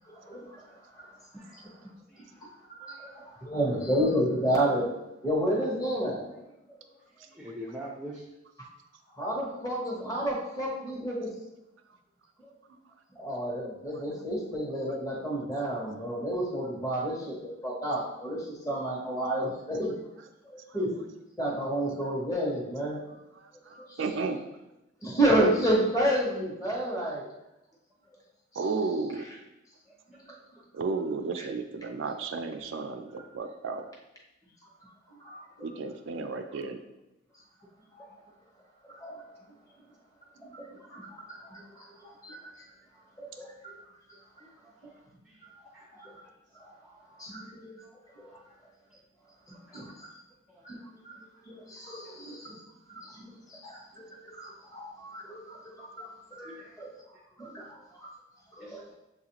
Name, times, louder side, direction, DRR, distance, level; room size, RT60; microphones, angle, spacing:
voice 1, 0.1-1.1 1.5-1.9 2.7-4.9 5.2-6.3 6.7-6.8 9.1-11.4 13.1-20.0 20.4-21.0 21.4-23.0 23.7-24.0 25.0-27.3 30.1-30.4 31.4-31.5 35.2-35.7 37.9-38.1 38.8-39.2 40.4-42.5 43.2-43.7 45.4-46.1 46.5-46.7 47.2-47.7 48.1-48.3 49.5-50.1 50.6-50.8 51.0-51.1 51.4-52.6 52.9-54.0 54.3-56.9 57.4-58.1 58.5-58.9, right 1 dB, 20° left, -3 dB, 1.0 m, -31 dB
voice 2, 1.3-1.7 2.1-2.3 2.8-3.0 6.8-7.0 7.3-8.3 28.1-28.2 30.1-30.2 38.1-38.2 39.4-39.5 42.0-42.2 42.9-43.0 43.3-43.5 44.4-44.9 45.2-45.4 45.7-45.9 46.8-47.4 47.8-48.6 49.5-49.9 50.5-50.6 56.4-56.8 57.4-57.9 58.6-58.9, equal, 5° right, -4 dB, 0.4 m, -47 dB
voice 3, 23.4-24.4 28.5-29.3 30.7-33.8 35.6-36.8, right 4 dB, 70° right, 6 dB, 0.4 m, -33 dB
6.9 x 2.4 x 2.9 m, 0.93 s
head